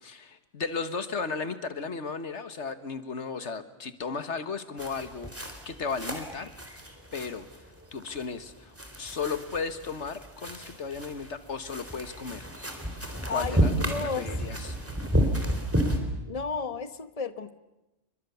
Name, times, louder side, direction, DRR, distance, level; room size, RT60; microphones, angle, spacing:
voice 1, 0.0-5.3 5.7-6.5 7.1-7.5 7.9-12.5 13.3-13.7 14.0-14.8, left 5 dB, 85° left, 11 dB, 1.9 m, -35 dB
sound 1, 4.8-16.0, equal, 10° right, 3.9 m, -31 dB
voice 2, 13.2-14.3 16.2-17.5, left 5 dB, 30° left, 11 dB, 1.3 m, -33 dB
30.0 x 24.5 x 7.1 m, 0.97 s
omnidirectional pair, 1.2 m